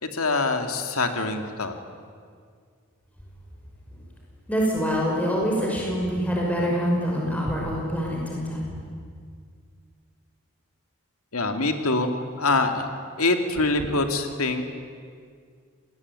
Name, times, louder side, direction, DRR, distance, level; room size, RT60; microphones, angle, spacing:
voice 1, 0.0-1.7 11.3-12.9 13.2-14.6, left 3 dB, 80° left, 6 dB, 2.4 m, -24 dB
voice 2, 4.5-8.6, equal, 5° left, -3 dB, 5.8 m, -25 dB
26.5 x 20.0 x 9.7 m, 2.1 s
head